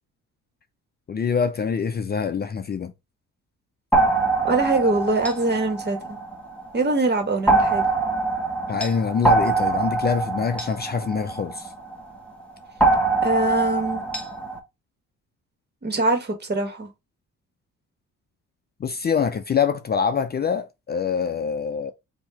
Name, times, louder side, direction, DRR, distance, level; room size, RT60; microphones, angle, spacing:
voice 1, 1.1-2.9 8.7-11.7 18.8-21.9, left 6 dB, 35° left, 0.5 m, -25 dB
sound 1, 3.9-6.7 7.5-12.0 12.8-14.6, right 3 dB, 5° left, 1.5 m, -23 dB
voice 2, 4.4-6.2 6.7-7.9 13.2-14.1 15.8-16.9, right 2 dB, 35° right, 1.8 m, -23 dB
4.4 x 2.9 x 4.1 m
cardioid pair, 90°, 30 cm